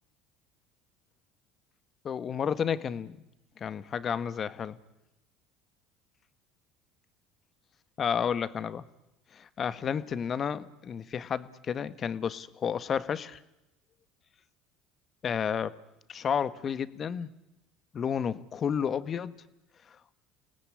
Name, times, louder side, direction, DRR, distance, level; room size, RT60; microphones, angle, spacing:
voice 1, 2.0-3.2 3.6-4.8 8.0-8.9 9.3-13.4 15.2-15.7 16.1-17.3 17.9-19.3, left 7 dB, 40° left, 14 dB, 1.5 m, -31 dB
30.0 x 18.5 x 9.9 m, 0.94 s
hypercardioid pair, 75°, 0 cm